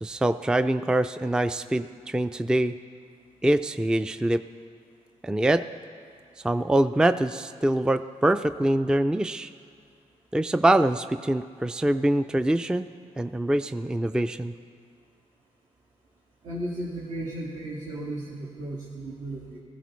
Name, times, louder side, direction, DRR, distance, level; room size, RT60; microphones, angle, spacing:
voice 1, 0.0-2.8 3.4-4.4 5.2-5.6 6.4-9.5 10.3-12.9 13.2-14.5, right 1 dB, 5° right, 11 dB, 0.3 m, -24 dB
voice 2, 16.4-19.6, right 1 dB, 70° right, -6 dB, 1.7 m, -35 dB
17.5 x 15.0 x 3.1 m, 2.2 s
cardioid pair, 70°, 13 cm